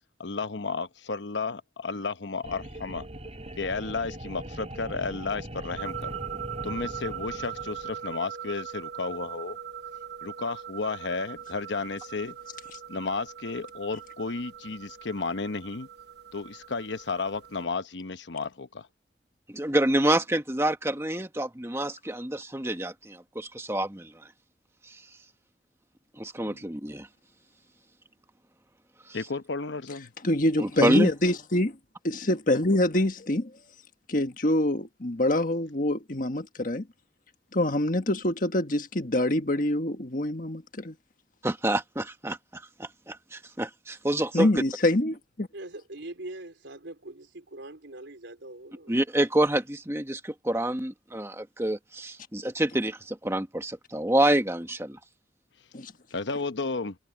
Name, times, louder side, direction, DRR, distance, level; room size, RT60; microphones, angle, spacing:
voice 1, 0.2-3.1 3.6-6.1 6.6-9.6 10.2-12.4 12.7-15.9 16.3-18.9 26.4-26.6 29.1-30.1 56.1-57.0, left 4 dB, 80° left, 1.0 m, -33 dB
sound 1, 2.4-8.2, right 1 dB, 35° right, 4.0 m, -41 dB
sound 2, 5.8-17.7, right 8 dB, 65° right, 1.0 m, -40 dB
voice 2, 19.5-24.1 24.9-25.0 26.2-27.1 29.1-29.2 30.6-31.1 41.4-44.5 48.9-55.0, right 1 dB, 15° right, 1.5 m, -27 dB
voice 3, 30.2-31.8 32.0-33.5 34.1-36.9 37.5-41.0 44.3-45.5 55.7-55.9, left 1 dB, 45° left, 1.6 m, -25 dB
voice 4, 45.5-49.0, right 2 dB, 85° right, 3.7 m, -42 dB
head